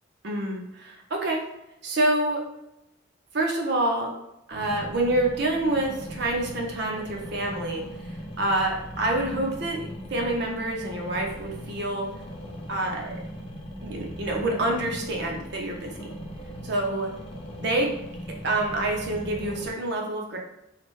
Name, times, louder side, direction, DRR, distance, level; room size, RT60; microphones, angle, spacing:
voice 1, 0.2-1.4 1.8-2.5 3.3-4.1 4.5-7.8 8.4-12.1 12.7-13.2 13.8-16.1 16.6-17.1 17.5-20.4, right 1 dB, 60° right, 1 dB, 0.6 m, -27 dB
sound 1, 4.5-19.7, equal, 30° left, 0.5 m, -39 dB
3.2 x 2.0 x 3.0 m, 0.87 s
head